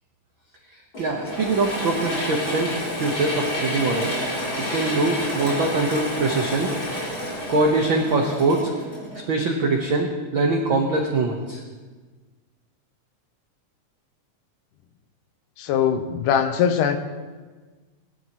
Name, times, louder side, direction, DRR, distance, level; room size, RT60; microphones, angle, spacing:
Mechanisms / Drill, 0.9-9.5, equal, 35° left, 3.9 m, -29 dB
voice 1, 1.0-4.1 4.7-6.7 7.5-8.7 9.3-11.6, right 3 dB, 80° right, 1 dB, 1.1 m, -23 dB
voice 2, 15.6-17.0, left 8 dB, 75° left, 8 dB, 2.3 m, -21 dB
20.5 x 12.5 x 3.0 m, 1.4 s
omnidirectional pair, 3.8 m